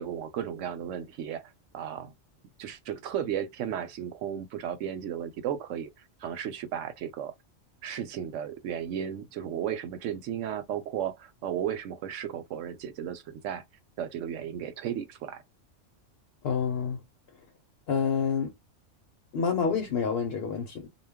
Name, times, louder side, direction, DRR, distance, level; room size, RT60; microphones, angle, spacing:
voice 1, 0.0-1.4 1.7-2.1 2.6-5.9 6.2-7.3 7.8-13.6 14.0-15.4, right 9 dB, 85° right, 0.9 m, -34 dB
voice 2, 16.4-17.0 17.9-18.5 19.3-20.9, left 6 dB, 60° left, 0.9 m, -28 dB
2.2 x 2.2 x 3.4 m
omnidirectional pair, 1.2 m